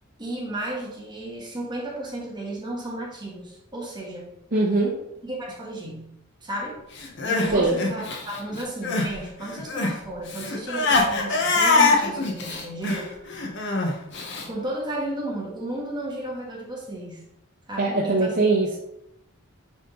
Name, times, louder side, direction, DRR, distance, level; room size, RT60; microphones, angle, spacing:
voice 1, 0.2-4.3 5.2-6.8 7.3-13.3 14.5-17.2 17.7-18.4, right 1 dB, 20° right, -3 dB, 1.6 m, -33 dB
voice 2, 4.5-5.0 7.5-7.8 17.8-18.8, right 2 dB, 45° right, -3 dB, 1.0 m, -21 dB
Crying sobbing, 7.0-9.2 9.4-14.5, left 3 dB, 60° left, 1.1 m, -24 dB
9.1 x 3.7 x 3.8 m, 0.83 s
head